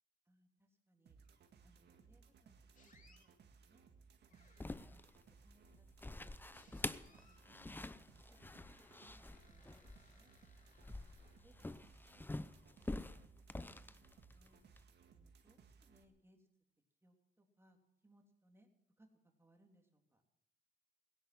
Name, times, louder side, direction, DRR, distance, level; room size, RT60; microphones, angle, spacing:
voice 1, 0.2-1.2 1.6-3.3 3.6-3.9 4.3-6.3 6.6-7.6 7.9-8.5 8.8-10.3 11.0-11.1 11.4-12.6 13.3-13.4 13.7-14.6 15.1-16.5 17.0-17.8 18.0-18.7 19.0-19.1 19.4-20.2, right 1 dB, 15° right, 2 dB, 3.3 m, -72 dB
sound 1, 1.1-16.1, right 5 dB, 65° right, 2.0 m, -64 dB
sound 2, 2.7-3.3 4.3-5.0 6.5-7.5 8.3-11.7, left 3 dB, 45° left, 3.2 m, -70 dB
sound 3, 4.6-14.8, left 2 dB, 10° left, 0.6 m, -47 dB
17.0 x 10.5 x 7.8 m, 0.80 s
cardioid pair, 85°, 19 cm